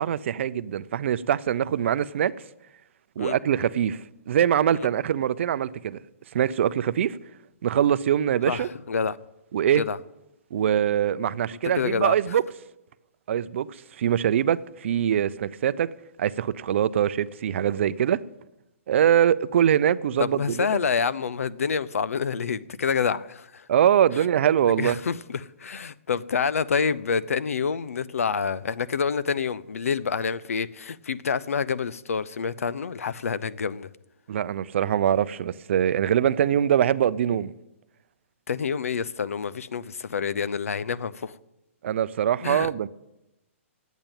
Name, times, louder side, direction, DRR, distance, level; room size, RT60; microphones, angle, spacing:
voice 1, 0.0-2.3 3.2-6.0 6.3-7.2 7.6-8.7 9.5-9.8 10.5-12.4 13.3-13.7 14.0-15.9 16.2-18.2 18.9-20.7 23.7-25.0 34.3-37.5 41.8-42.9, right 9 dB, 60° right, 0.5 m, -23 dB
voice 2, 8.5-9.2 9.8-10.0 11.8-12.4 20.2-23.7 24.2-24.3 24.8-33.9 38.5-41.4 42.4-42.7, left 6 dB, 85° left, 0.6 m, -27 dB
10.5 x 8.2 x 8.9 m
hypercardioid pair, 145°, 7 cm